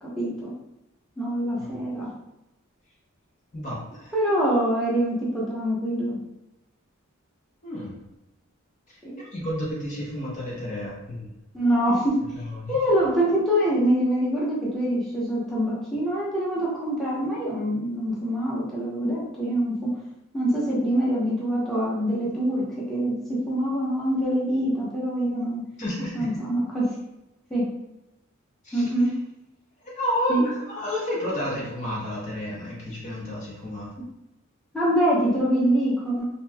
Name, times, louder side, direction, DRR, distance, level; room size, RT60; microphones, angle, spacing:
voice 1, 0.0-0.5 1.2-2.1 4.1-6.2 9.0-9.2 11.5-12.1 12.7-19.9 20.3-25.6 26.1-26.9 27.5-27.6 28.7-29.1 30.3-30.4 34.7-36.2, equal, ahead, -7 dB, 0.8 m, -24 dB
voice 2, 1.6-1.9 3.5-4.1 7.6-7.9 8.9-11.3 12.3-12.8 25.8-26.3 28.6-28.9 29.8-33.9, left 1 dB, 35° left, -5 dB, 0.7 m, -31 dB
2.7 x 2.2 x 3.3 m, 0.92 s
head